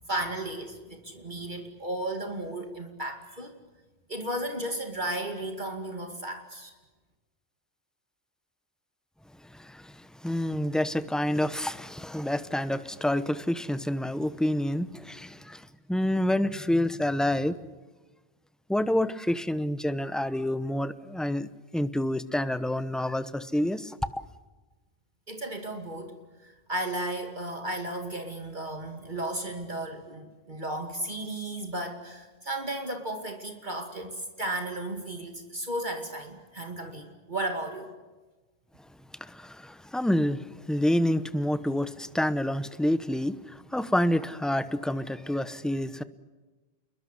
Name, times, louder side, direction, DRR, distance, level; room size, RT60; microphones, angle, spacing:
voice 1, 0.1-3.5 4.1-6.7 25.3-26.2 26.4-37.9, right 1 dB, 50° right, 5 dB, 2.6 m, -34 dB
voice 2, 9.5-17.6 18.7-24.2 39.2-46.0, left 1 dB, ahead, 13 dB, 0.8 m, -28 dB
28.5 x 22.0 x 8.3 m, 1.2 s
omnidirectional pair, 1.0 m